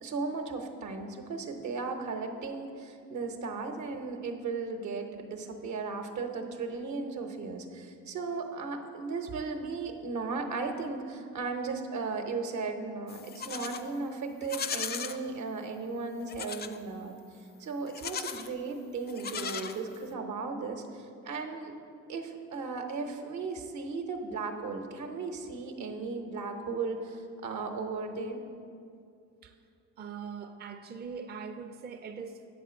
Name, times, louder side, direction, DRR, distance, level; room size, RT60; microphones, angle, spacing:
voice 1, 0.0-17.1 17.6-21.8 22.1-28.4, right 4 dB, 75° right, 5 dB, 0.9 m, -36 dB
Livestock farm animals working animals, 13.1-13.9 14.4-15.2 16.3-16.8 17.9-18.5 19.1-20.1, left 6 dB, 35° left, 0.4 m, -37 dB
voice 2, 30.0-32.6, right 6 dB, 35° right, 5 dB, 0.4 m, -42 dB
8.5 x 4.3 x 6.9 m, 2.4 s
cardioid pair, 90°, 30 cm